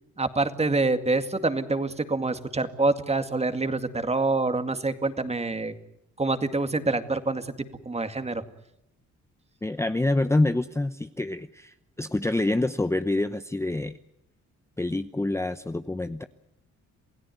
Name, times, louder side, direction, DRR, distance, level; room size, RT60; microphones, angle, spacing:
voice 1, 0.2-5.7 6.2-7.5 7.9-8.4, right 3 dB, 20° right, 9 dB, 2.2 m, -26 dB
voice 2, 9.6-14.0 14.8-16.2, left 2 dB, 10° left, 10 dB, 0.8 m, -26 dB
28.0 x 16.5 x 9.3 m, 0.83 s
cardioid pair, 90°, 30 cm